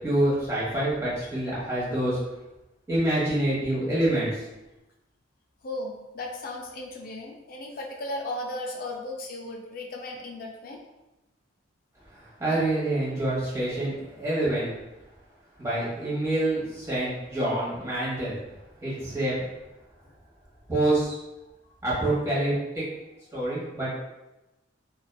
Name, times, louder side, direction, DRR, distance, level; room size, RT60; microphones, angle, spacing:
voice 1, 0.0-2.2 2.9-4.4 12.1-14.7 15.6-18.4 18.8-19.5 20.7-21.1 21.8-22.8 23.3-23.9, right 1 dB, 15° right, -9 dB, 1.0 m, -26 dB
voice 2, 5.6-10.8 20.0-20.1, left 1 dB, 50° left, 1 dB, 0.4 m, -36 dB
2.7 x 2.3 x 2.2 m, 0.99 s
head